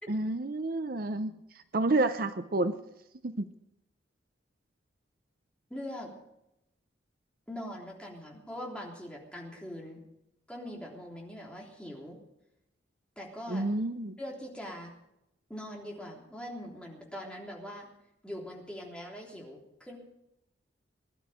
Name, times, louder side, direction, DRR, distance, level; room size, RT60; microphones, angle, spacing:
voice 1, 0.1-1.3 1.7-2.8 3.2-3.5 13.5-14.2, right 2 dB, 50° right, 10 dB, 0.7 m, -29 dB
voice 2, 5.7-6.1 7.5-10.0 10.5-12.2 13.2-13.7 14.2-14.9 15.5-17.9 18.2-20.0, equal, 5° left, -2 dB, 3.3 m, -42 dB
20.5 x 11.5 x 5.1 m, 0.84 s
head